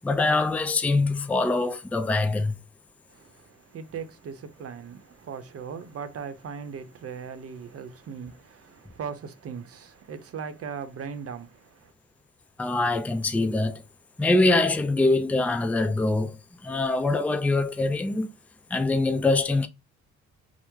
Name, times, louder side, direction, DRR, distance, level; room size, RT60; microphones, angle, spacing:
voice 1, 0.0-2.5 12.6-13.8 14.2-18.3 18.7-19.7, left 2 dB, 5° left, 0.4 m, -24 dB
voice 2, 3.1-11.9, right 6 dB, 50° right, 0.7 m, -39 dB
4.5 x 2.1 x 3.5 m
cardioid pair, 90°, 30 cm